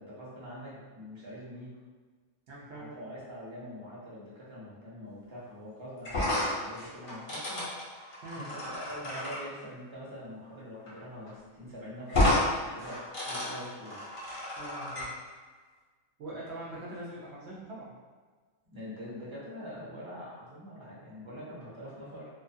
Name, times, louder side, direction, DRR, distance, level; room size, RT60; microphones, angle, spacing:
voice 1, 0.0-1.7 2.7-8.0 8.3-13.0 13.3-14.0 18.7-22.3, equal, 30° right, -8 dB, 0.6 m, -44 dB
voice 2, 2.5-3.0 8.2-8.5 14.6-15.2 16.2-17.9, right 1 dB, 65° right, -6 dB, 0.7 m, -43 dB
sound 1, 6.0-9.4 10.9-11.0 11.3-11.4 12.1-12.5 12.8-15.1, left 1 dB, 50° left, 0.7 m, -31 dB
2.5 x 2.3 x 2.5 m, 1.4 s
omnidirectional pair, 1.5 m